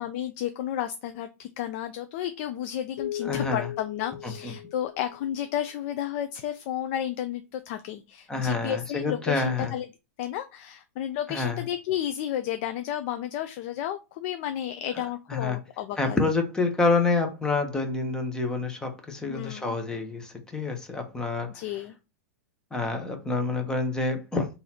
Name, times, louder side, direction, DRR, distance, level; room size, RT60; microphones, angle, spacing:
voice 1, 0.0-9.9 10.2-16.2 19.3-19.7 21.5-21.9, left 11 dB, 50° left, 0.4 m, -32 dB
sound 1, 3.0-5.5, left 11 dB, 75° left, 1.0 m, -37 dB
voice 2, 3.2-3.7 4.2-4.5 8.3-9.7 11.3-11.6 15.3-15.6 16.0-21.6 22.7-24.5, left 3 dB, 10° left, 1.0 m, -27 dB
3.9 x 2.7 x 4.3 m
hypercardioid pair, 135°, 8 cm